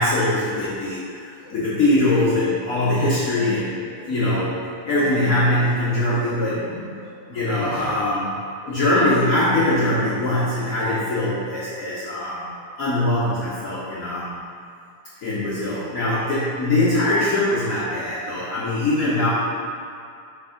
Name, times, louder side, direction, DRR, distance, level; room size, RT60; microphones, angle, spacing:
voice 1, 0.0-8.3 8.6-12.5 12.8-14.4 15.2-19.3, left 1 dB, 65° left, -10 dB, 0.8 m, -22 dB
7.8 x 2.7 x 5.1 m, 2.4 s
omnidirectional pair, 3.5 m